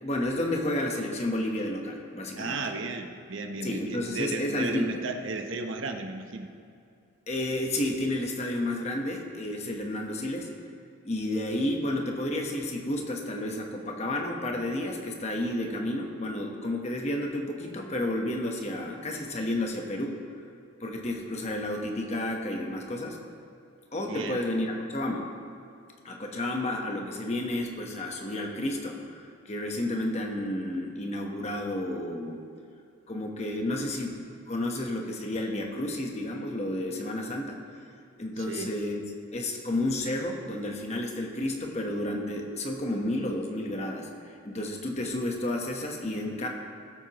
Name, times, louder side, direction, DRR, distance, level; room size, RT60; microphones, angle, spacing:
voice 1, 0.0-2.6 3.6-5.0 7.3-10.5 11.0-20.2 20.8-23.2 23.9-25.2 26.0-32.4 33.1-37.6 38.2-39.0 39.3-46.5, left 1 dB, 30° left, 1 dB, 1.1 m, -31 dB
voice 2, 2.4-6.5 24.1-24.4 38.5-38.7, right 3 dB, 65° right, 4 dB, 0.9 m, -34 dB
18.5 x 8.1 x 3.0 m, 2.4 s
head